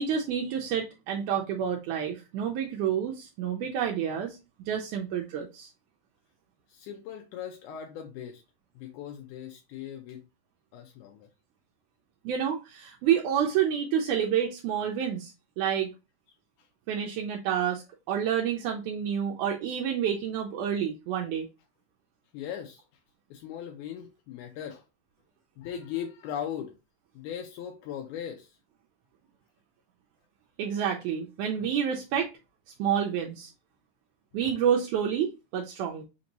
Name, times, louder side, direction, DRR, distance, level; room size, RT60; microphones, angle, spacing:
voice 1, 0.0-4.4 4.7-5.7 12.3-15.9 16.9-21.5 30.6-32.3 32.8-33.5 34.3-36.0, right 8 dB, 80° right, 1.8 m, -29 dB
voice 2, 6.7-8.4 8.8-10.2 10.7-11.3 22.3-22.8 23.3-24.8 25.6-26.7 27.2-28.5 31.6-31.7 34.4-34.5, left 9 dB, 80° left, 1.9 m, -39 dB
5.1 x 2.6 x 2.9 m
omnidirectional pair, 3.9 m